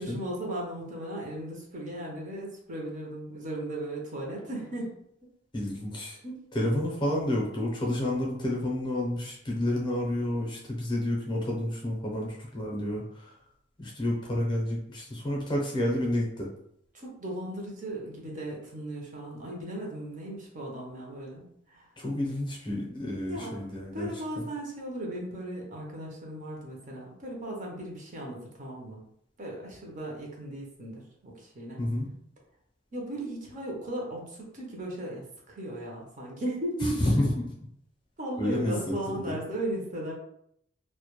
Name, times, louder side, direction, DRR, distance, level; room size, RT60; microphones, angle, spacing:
voice 1, 0.0-4.9 6.2-6.4 16.9-21.9 23.3-23.6 23.9-29.0 29.4-31.8 32.9-37.0 38.2-40.1, right 1 dB, 35° right, -1 dB, 0.5 m, -36 dB
voice 2, 5.5-6.2 6.5-13.3 13.8-16.5 22.0-24.1 31.8-32.1 37.0-37.5 38.4-38.9, left 1 dB, 20° left, -3 dB, 0.6 m, -29 dB
2.1 x 2.1 x 2.9 m, 0.72 s
head